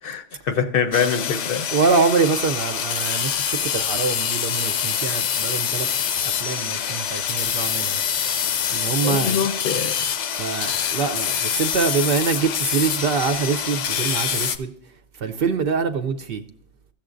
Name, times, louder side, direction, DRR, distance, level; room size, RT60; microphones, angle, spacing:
voice 1, 0.0-1.7 9.0-9.9, left 7 dB, 60° left, 0.8 m, -24 dB
sound 1, 0.9-14.6, left 8 dB, 85° left, 1.0 m, -25 dB
voice 2, 1.7-8.0 8.3-9.5 10.3-14.7 15.2-16.4, right 5 dB, 60° right, 0.7 m, -24 dB
13.0 x 7.2 x 2.5 m
omnidirectional pair, 1.2 m